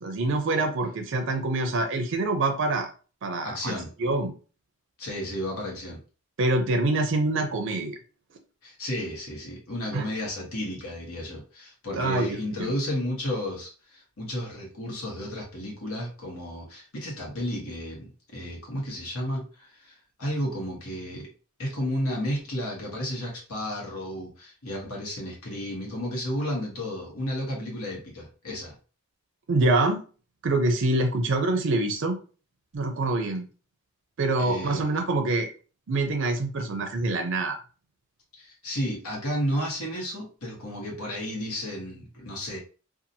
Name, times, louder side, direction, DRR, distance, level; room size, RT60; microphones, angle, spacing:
voice 1, 0.0-2.9 3.2-3.7 4.0-4.3 6.4-8.0 9.9-10.1 11.9-12.7 29.5-30.0 30.4-32.2 32.7-33.5 34.2-35.5 35.9-37.6, right 2 dB, 60° right, 5 dB, 0.4 m, -25 dB
voice 2, 3.4-3.9 5.0-6.0 8.6-21.3 21.6-28.7 34.4-34.8 38.3-42.6, equal, 85° left, -2 dB, 1.2 m, -32 dB
2.7 x 2.4 x 2.6 m, 0.36 s
head